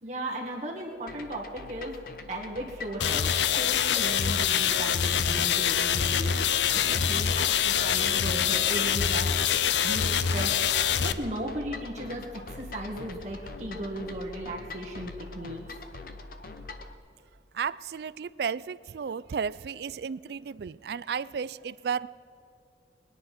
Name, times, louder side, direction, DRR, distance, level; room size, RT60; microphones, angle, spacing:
voice 1, 0.0-2.0 2.3-6.3 6.7-9.3 9.8-15.6, right 1 dB, 40° right, -2 dB, 1.8 m, -36 dB
sound 1, 1.1-16.9, left 3 dB, 50° left, 0.9 m, -43 dB
sound 2, 3.0-11.1, left 8 dB, 80° left, 0.6 m, -25 dB
sound 3, 3.0-15.6, left 1 dB, 20° left, 0.7 m, -48 dB
voice 2, 17.5-22.1, right 6 dB, 60° right, 19 dB, 0.3 m, -33 dB
21.0 x 10.0 x 5.9 m, 2.7 s
head